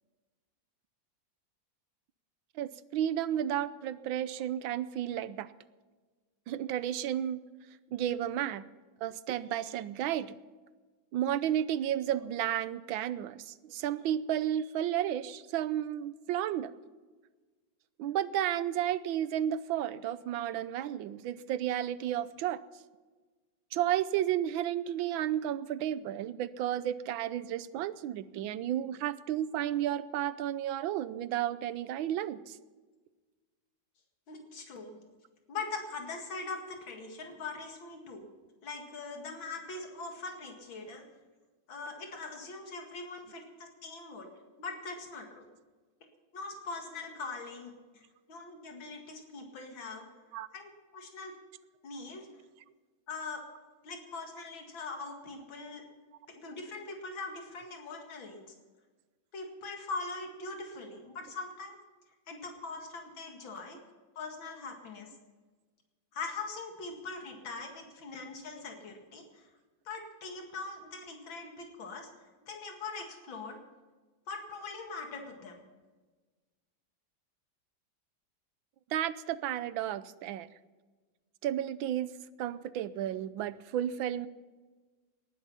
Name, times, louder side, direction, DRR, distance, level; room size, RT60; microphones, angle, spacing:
voice 1, 2.6-5.5 6.5-7.4 7.9-8.6 9.0-10.3 11.1-16.7 18.0-22.6 23.7-32.6 50.3-50.5 78.9-80.5 81.4-82.1 82.4-84.3, right 11 dB, 90° right, 15 dB, 1.5 m, -32 dB
voice 2, 34.3-35.0 35.5-38.3 38.6-41.0 41.7-44.3 44.6-45.5 46.3-48.0 48.3-50.1 50.5-51.4 51.8-52.3 53.1-53.4 53.8-55.8 56.3-58.4 59.3-61.8 62.3-63.8 64.2-65.1 66.1-69.5 69.9-72.1 72.5-73.6 74.3-75.6, left 3 dB, 80° left, 3 dB, 2.9 m, -42 dB
19.0 x 12.0 x 5.6 m, 1.3 s
omnidirectional pair, 2.1 m